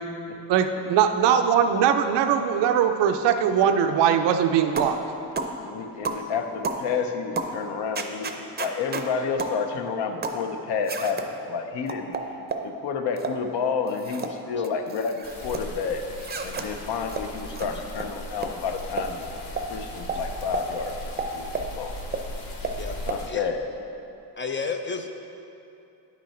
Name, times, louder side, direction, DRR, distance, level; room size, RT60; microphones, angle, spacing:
voice 1, 0.5-5.0, right 8 dB, 75° right, 7 dB, 0.6 m, -21 dB
sound 1, 4.8-5.0 5.4-5.6 6.1-6.3 6.6-6.8 7.4-7.6 8.0-9.1 9.4-9.6 10.2-10.4 10.9-11.3 11.9-12.7 13.2-13.4 13.9-14.3 14.6-15.6 16.2-16.7 17.1-17.2 17.6-17.7 18.0-18.1 18.4-18.5 19.0-19.1 19.6-19.7 20.1-20.2 20.5-20.7 21.2-21.7 22.1-22.2 22.6-22.8 23.1-23.2, right 4 dB, 25° right, 0.6 m, -31 dB
voice 2, 5.6-12.2 12.6-16.0 16.4-19.2 19.7-22.0 23.1-23.7, left 5 dB, 70° left, 5 dB, 0.8 m, -30 dB
sound 2, 15.2-23.3, left 1 dB, 50° left, 1.6 m, -38 dB
voice 3, 24.4-25.1, left 5 dB, 30° left, 5 dB, 0.4 m, -31 dB
9.1 x 6.1 x 4.3 m, 2.8 s
cardioid pair, 105°, 43 cm